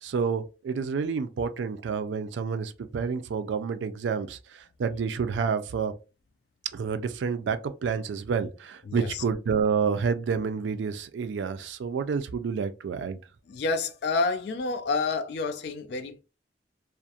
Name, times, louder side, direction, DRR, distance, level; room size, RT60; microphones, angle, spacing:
voice 1, 0.0-5.9 6.7-13.2, right 5 dB, 80° right, 0.3 m, -29 dB
voice 2, 8.9-9.2 13.5-16.2, left 3 dB, 65° left, 0.3 m, -29 dB
2.4 x 2.1 x 2.7 m
head